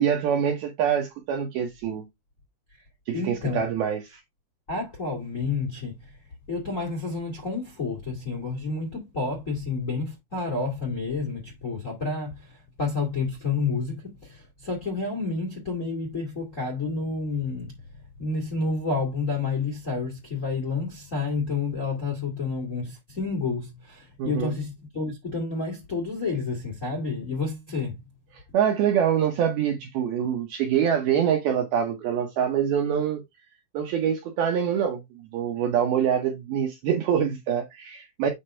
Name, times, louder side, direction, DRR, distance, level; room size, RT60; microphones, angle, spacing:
voice 1, 0.0-2.1 3.1-4.2 24.2-24.5 28.5-33.2 33.7-35.0 35.3-38.3, right 8 dB, 75° right, 2.3 m, -25 dB
voice 2, 3.1-3.6 4.7-6.1 6.5-17.7 18.2-28.0, left 4 dB, 50° left, 0.8 m, -30 dB
8.6 x 3.6 x 4.3 m
omnidirectional pair, 5.4 m